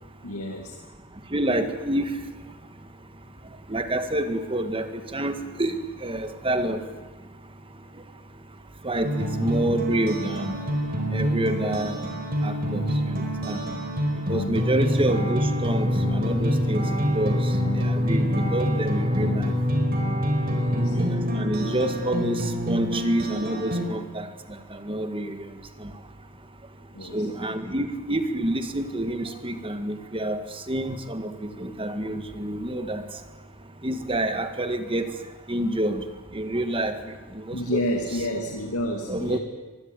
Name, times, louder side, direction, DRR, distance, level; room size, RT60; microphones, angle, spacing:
voice 1, 0.2-0.8 14.7-14.9 20.5-21.0 26.9-27.2 37.5-39.4, equal, 75° left, 2 dB, 2.5 m, -30 dB
voice 2, 1.3-2.1 3.7-4.9 5.1-5.8 6.0-6.8 8.8-10.6 11.1-12.0 12.4-12.8 13.2-13.6 14.3-16.8 17.1-17.4 17.9-19.5 21.0-21.1 21.3-22.4 22.7-24.3 24.9-25.4 27.1-30.4 30.7-31.3 31.6-33.0 33.8-35.1 35.5-36.0 36.3-36.9 37.4-37.5 37.7-37.8 39.1-39.4, right 1 dB, 25° right, 8 dB, 1.8 m, -27 dB
sound 1, 9.0-23.8, equal, 45° right, 4.7 m, -26 dB
24.0 x 20.5 x 9.2 m, 1.2 s
head